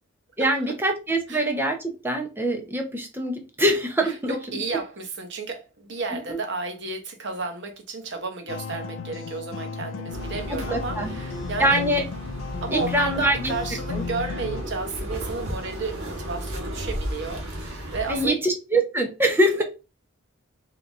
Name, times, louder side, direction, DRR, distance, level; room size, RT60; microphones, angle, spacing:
voice 1, 0.4-4.4 6.1-6.4 10.5-11.1 11.6-12.0 12.7-13.5 13.9-14.0 18.1-19.6, right 1 dB, 10° right, 0.6 m, -24 dB
voice 2, 4.0-11.8 12.6-18.4 19.6-19.7, right 3 dB, 55° right, 1.0 m, -32 dB
sound 1, 8.5-14.6, left 5 dB, 60° left, 0.4 m, -35 dB
sound 2, 10.1-18.3, equal, 70° right, 1.3 m, -34 dB
3.9 x 2.8 x 3.5 m
head